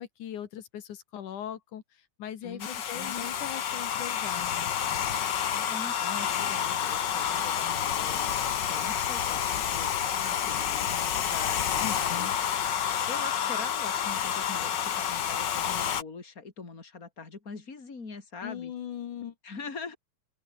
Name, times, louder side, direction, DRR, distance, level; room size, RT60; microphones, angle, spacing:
voice 1, 0.0-4.7 11.8-12.3 18.4-19.3, left 10 dB, 80° left, 3.2 m, -40 dB
Domestic sounds home sounds, 2.6-16.0, left 9 dB, 55° left, 1.3 m, -29 dB
voice 2, 2.9-3.3 5.5-12.3 12.8-18.7 19.4-20.0, left 4 dB, 25° left, 3.8 m, -43 dB
open air
omnidirectional pair, 3.5 m